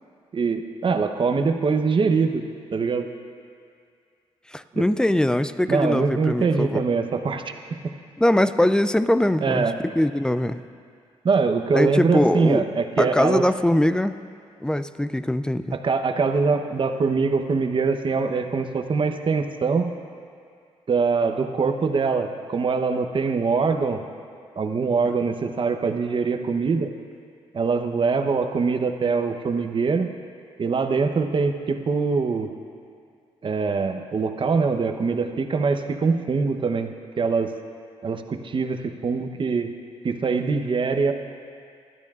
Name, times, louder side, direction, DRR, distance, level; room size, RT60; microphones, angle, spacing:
voice 1, 0.3-2.4 2.7-3.1 4.7-4.8 5.7-7.9 9.4-9.8 11.2-13.4 15.7-19.9 20.9-24.0 24.6-26.9 27.5-30.1 30.6-32.5 33.4-37.5 38.0-39.7 40.0-41.1, right 4 dB, 45° right, 6 dB, 0.9 m, -23 dB
voice 2, 4.5-6.8 8.2-9.7 10.0-10.6 11.7-12.6 13.0-14.2 14.6-15.8, left 1 dB, 5° left, 13 dB, 0.4 m, -21 dB
19.5 x 12.5 x 2.5 m, 2.3 s
cardioid pair, 75°, 11 cm